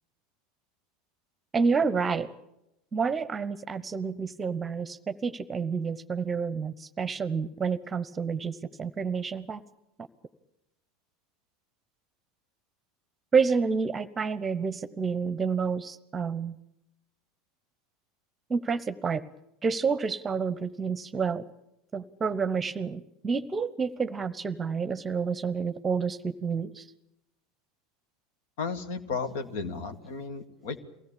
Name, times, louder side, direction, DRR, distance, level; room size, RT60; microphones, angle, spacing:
voice 1, 1.5-2.3 2.9-9.6 13.3-16.6 18.5-19.2 19.6-21.4 21.9-26.9, right 5 dB, 20° right, 15 dB, 1.0 m, -29 dB
voice 2, 28.6-30.8, left 4 dB, 55° left, 9 dB, 1.9 m, -34 dB
23.5 x 17.5 x 8.7 m, 0.86 s
figure-of-eight pair, 75°, 0 cm